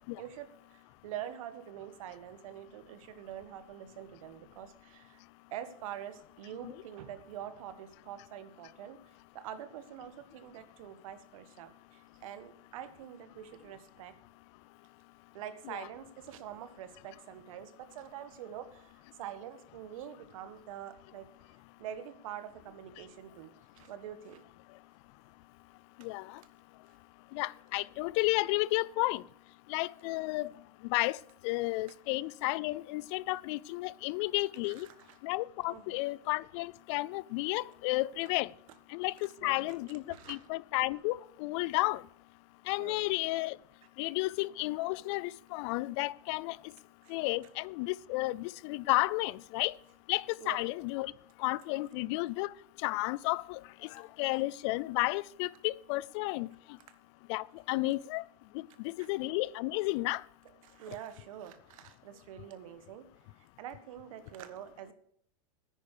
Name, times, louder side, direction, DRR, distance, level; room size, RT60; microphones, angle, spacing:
voice 1, 0.2-5.2 5.5-9.0 9.3-14.1 15.3-21.3 21.8-24.4 34.6-35.2 35.7-36.0 39.4-39.7 40.1-40.4 42.8-43.0 47.0-47.1 50.4-50.6 59.0-59.1 60.6-63.1 63.4-64.9, right 10 dB, 70° right, 1.5 m, -45 dB
voice 2, 27.3-29.2 29.7-30.5 30.9-31.2 31.4-34.9 35.2-38.5 38.9-39.1 39.4-42.0 42.7-43.6 44.0-46.6 47.1-49.7 50.1-51.1 51.4-52.5 52.8-53.6 54.2-56.5 57.3-58.2 58.5-60.2, left 21 dB, 55° left, 0.4 m, -32 dB
9.9 x 9.1 x 6.7 m
supercardioid pair, 125°, 18 cm